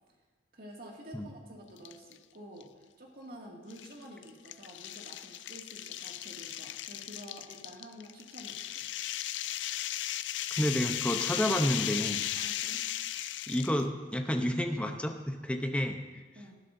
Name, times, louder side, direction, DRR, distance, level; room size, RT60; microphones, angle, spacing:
voice 1, 0.5-8.9 12.3-12.9 16.4-16.6, equal, 55° right, -1 dB, 2.2 m, -49 dB
sound 1, 1.8-2.2 2.6-2.7 3.7-13.8, left 12 dB, 90° left, 0.4 m, -36 dB
voice 2, 10.6-12.3 13.5-16.2, equal, 5° left, 4 dB, 0.8 m, -30 dB
19.0 x 11.0 x 2.7 m, 1.3 s
head